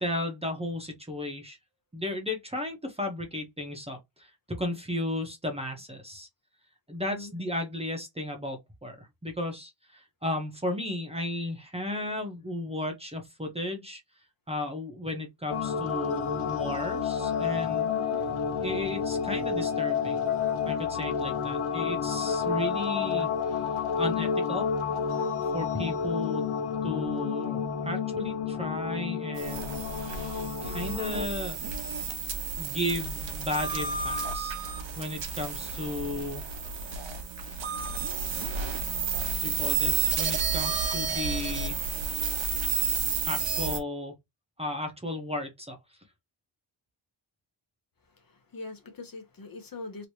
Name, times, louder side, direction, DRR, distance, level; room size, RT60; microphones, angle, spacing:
voice 1, 0.0-1.6 1.9-6.3 6.9-14.0 14.5-17.9 18.6-20.2 20.7-23.3 24.0-24.7 25.5-26.5 26.8-29.8 30.6-31.6 32.6-34.5 35.0-36.4 39.4-41.8 43.2-44.1 44.6-45.8, left 1 dB, 15° right, 0.9 m, -34 dB
voice 2, 7.0-7.3 17.9-18.2 48.1-50.1, left 3 dB, 45° left, 1.1 m, -42 dB
sound 1, 15.5-31.3, left 6 dB, 90° left, 1.1 m, -30 dB
sound 2, 29.4-43.8, right 5 dB, 65° right, 1.1 m, -31 dB
3.2 x 2.9 x 2.8 m
wide cardioid pair, 150°, 48 cm